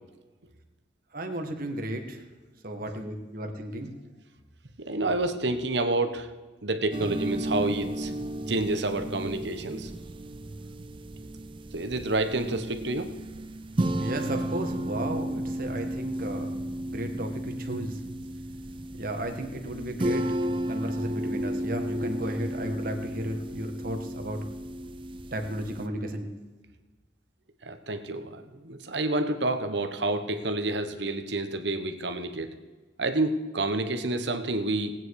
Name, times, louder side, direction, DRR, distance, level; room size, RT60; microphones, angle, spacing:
voice 1, 1.1-2.2 2.6-3.9 14.0-18.0 18.9-20.3 20.7-24.4 25.3-26.3, right 1 dB, 50° right, 5 dB, 1.7 m, -34 dB
voice 2, 4.8-6.3 6.6-8.1 8.5-9.9 11.7-13.1 27.6-32.5 33.0-34.9, right 2 dB, 70° right, 8 dB, 1.3 m, -29 dB
sound 1, 6.9-25.9, right 1 dB, 30° right, 0.6 m, -33 dB
19.0 x 9.2 x 4.8 m, 1.3 s
head